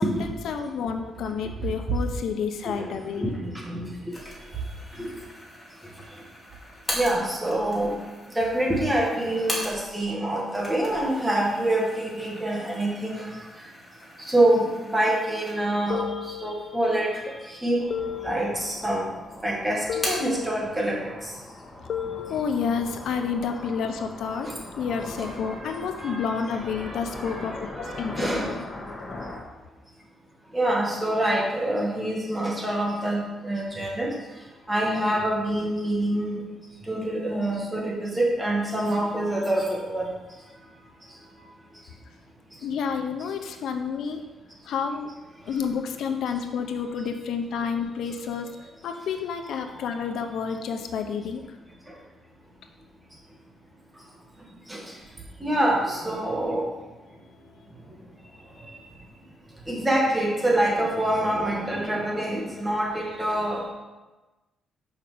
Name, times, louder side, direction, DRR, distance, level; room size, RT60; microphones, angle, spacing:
voice 1, 0.0-3.3 22.3-24.5 24.7-28.6 42.6-44.2 44.6-45.1 45.5-48.5 48.8-51.4 57.4-57.5, left 6 dB, 75° left, 6 dB, 0.8 m, -30 dB
voice 2, 3.2-4.2 4.9-5.2 6.9-8.0 8.3-13.7 14.2-17.9 18.2-19.1 19.4-21.3 24.4-24.6 25.2-26.3 26.8-28.5 30.5-34.1 34.7-36.4 36.9-40.1 49.6-49.7 54.7-55.0 55.4-56.7 58.6-58.8 59.7-63.7, right 1 dB, 15° right, -2 dB, 2.0 m, -26 dB
sound 1, 4.1-10.1 10.4-15.9 16.3-16.4 17.3-17.9 18.2-19.0 19.3-20.4, equal, 5° left, 2.3 m, -38 dB
sound 2, 15.9-17.1 17.9-19.1 19.9-21.1 21.9-23.1, left 8 dB, 55° left, 0.4 m, -35 dB
sound 3, 17.8-29.4, left 2 dB, 30° left, 1.7 m, -41 dB
5.8 x 5.7 x 6.7 m, 1.2 s
cardioid pair, 130°, 0 cm